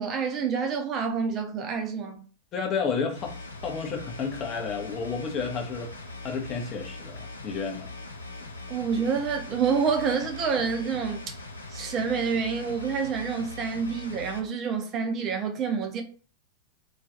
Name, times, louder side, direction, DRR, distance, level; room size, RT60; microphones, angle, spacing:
voice 1, 0.0-2.2 8.7-11.4 11.7-16.0, right 6 dB, 30° right, 0.5 m, -28 dB
voice 2, 2.5-3.4 3.6-5.9 6.2-7.9, left 5 dB, 30° left, 0.6 m, -31 dB
sound 1, 3.1-14.4, left 2 dB, 80° left, 0.4 m, -41 dB
2.4 x 2.2 x 2.5 m
figure-of-eight pair, 90°, 0 cm